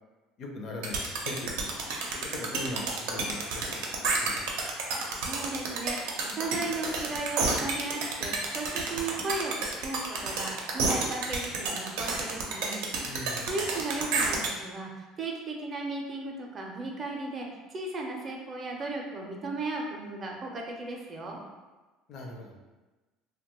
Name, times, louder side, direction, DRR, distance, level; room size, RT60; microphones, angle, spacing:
voice 1, 0.4-1.7 2.3-4.5 13.0-13.5 22.1-22.6, left 2 dB, 50° left, 2 dB, 0.4 m, -40 dB
sound 1, 0.8-14.5, right 4 dB, 90° right, 0.5 m, -30 dB
voice 2, 4.9-12.8 13.5-21.4, right 2 dB, 30° right, 0 dB, 0.5 m, -36 dB
2.9 x 2.1 x 2.9 m, 1.2 s
cardioid pair, 135°, 0 cm